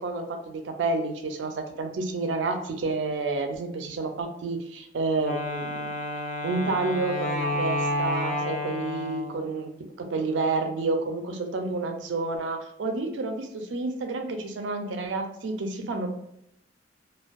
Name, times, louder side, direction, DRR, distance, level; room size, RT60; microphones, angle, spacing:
voice 1, 0.0-1.5 1.8-5.9 6.4-9.7 10.0-16.1, right 3 dB, 90° right, 5 dB, 0.4 m, -29 dB
Wind instrument woodwind instrument, 5.2-9.5, left 1 dB, 45° left, 0.4 m, -30 dB
2.5 x 2.2 x 2.3 m, 0.77 s
head